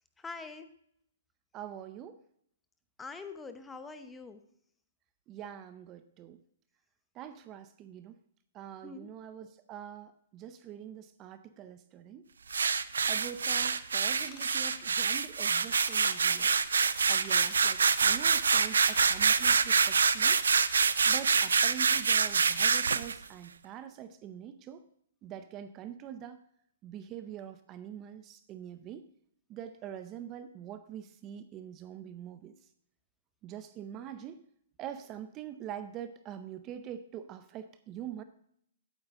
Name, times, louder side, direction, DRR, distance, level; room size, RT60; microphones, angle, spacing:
voice 1, 0.2-0.7 3.0-4.4 8.8-9.1, left 4 dB, 10° left, 9 dB, 0.8 m, -44 dB
voice 2, 1.5-2.2 5.3-6.4 7.1-8.2 8.5-12.3 13.1-16.5 17.1-20.4 21.1-24.9 25.2-26.4 26.8-29.1 29.5-32.6 33.4-34.4 34.8-38.2, right 10 dB, 30° right, 11 dB, 0.5 m, -44 dB
sound 1, 12.5-23.2, right 5 dB, 85° right, 0.5 m, -26 dB
Ratchet pawl / Tools, 14.1-15.0 15.7-16.2 17.0-17.9 18.6-19.0 19.2-19.4 19.9-20.0, left 6 dB, 30° left, 1.5 m, -47 dB
8.9 x 8.9 x 3.7 m, 0.68 s
hypercardioid pair, 135°, 0 cm